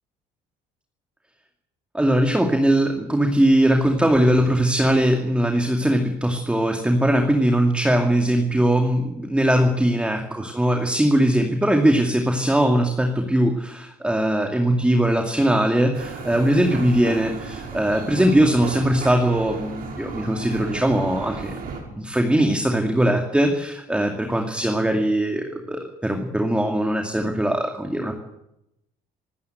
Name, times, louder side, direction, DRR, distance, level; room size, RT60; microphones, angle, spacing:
voice 1, 1.9-21.6 21.9-28.1, right 1 dB, 5° right, 3 dB, 2.4 m, -20 dB
sound 1, 15.9-21.8, right 4 dB, 60° right, 6.0 m, -34 dB
25.5 x 13.5 x 8.0 m, 0.86 s
cardioid pair, 110°, 17 cm